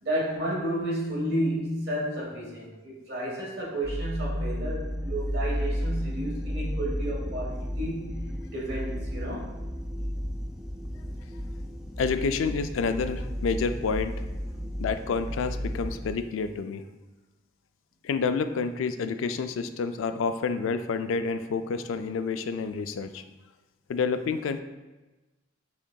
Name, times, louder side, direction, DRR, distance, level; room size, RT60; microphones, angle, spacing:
voice 1, 0.0-8.2 8.5-9.5, right 1 dB, 55° right, -4 dB, 1.4 m, -31 dB
sound 1, 3.8-16.1, equal, 5° right, 0.3 m, -33 dB
voice 2, 12.0-14.2 14.8-16.8 18.0-23.2 23.9-24.6, left 5 dB, 85° left, 10 dB, 0.3 m, -29 dB
5.7 x 3.7 x 2.2 m, 1.1 s
head